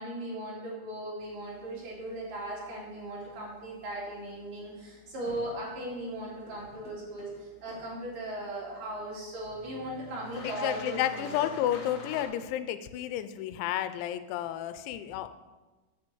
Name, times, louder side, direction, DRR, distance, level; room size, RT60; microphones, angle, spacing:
voice 1, 0.0-11.3, right 1 dB, 50° right, -5 dB, 4.0 m, -38 dB
sound 1, 1.2-12.2, left 2 dB, 55° left, 2.3 m, -49 dB
voice 2, 10.4-15.3, left 12 dB, 90° left, 11 dB, 3.0 m, -31 dB
8.7 x 8.0 x 6.9 m, 1.2 s
omnidirectional pair, 5.2 m